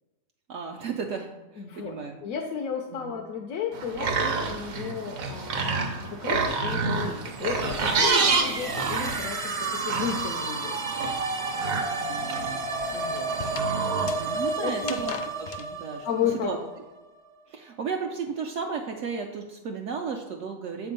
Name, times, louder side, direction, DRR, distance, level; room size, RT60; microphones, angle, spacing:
voice 1, 0.5-2.2 2.9-3.1 7.8-8.3 12.0-12.6 14.0-16.1 16.4-16.6 17.5-20.9, right 5 dB, 70° right, 2 dB, 0.9 m, -34 dB
voice 2, 1.6-10.8 12.9-13.3 14.6-15.0 16.0-16.5, left 7 dB, 90° left, 2 dB, 1.1 m, -33 dB
sound 1, 3.7-14.5, right 4 dB, 90° right, 1.3 m, -29 dB
sound 2, 5.8-9.5 9.8-15.7, left 7 dB, 65° left, 0.8 m, -44 dB
sound 3, 7.3-17.1, right 3 dB, 45° right, 0.4 m, -32 dB
7.4 x 3.5 x 5.2 m, 1.1 s
omnidirectional pair, 1.4 m